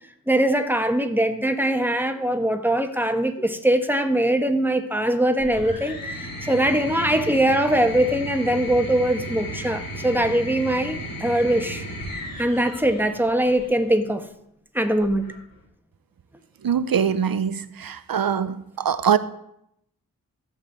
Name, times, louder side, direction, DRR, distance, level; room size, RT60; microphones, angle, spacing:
voice 1, 0.3-11.8 12.4-14.3 14.7-15.3, right 1 dB, 5° right, 6 dB, 1.4 m, -22 dB
sound 1, 5.4-13.8 15.0-15.6, equal, 75° left, 3.8 m, -35 dB
voice 2, 16.6-19.2, right 8 dB, 80° right, 13 dB, 0.8 m, -23 dB
14.0 x 5.6 x 8.1 m, 0.76 s
wide cardioid pair, 65°, 35 cm